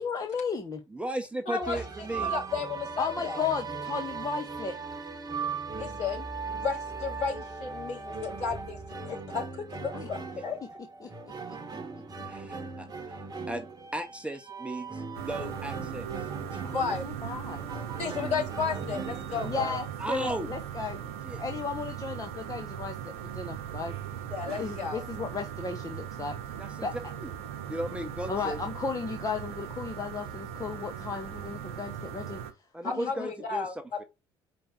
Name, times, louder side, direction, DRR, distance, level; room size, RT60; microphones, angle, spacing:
voice 1, 0.0-0.8 3.0-4.8 9.9-10.1 11.0-11.1 11.5-11.6 16.6-17.6 19.4-24.0 24.6-26.4 26.8-27.1 28.3-32.4 32.8-33.3, left 5 dB, 25° left, 1.1 m, -34 dB
voice 2, 0.9-2.3 12.2-13.7 13.9-16.6 20.0-20.5 21.2-21.4 26.6-26.9 27.2-27.3 27.7-28.6 32.7-34.0, right 1 dB, 10° right, 1.0 m, -36 dB
voice 3, 1.4-1.8 2.2-3.5 5.7-10.8 16.6-17.0 18.0-19.8 24.3-25.0 32.8-33.7, left 5 dB, 50° left, 3.3 m, -33 dB
sound 1, 1.6-19.7, right 4 dB, 25° right, 1.2 m, -38 dB
sound 2, 15.1-32.5, right 9 dB, 65° right, 1.1 m, -39 dB
5.0 x 4.6 x 5.8 m
figure-of-eight pair, 55°, 14 cm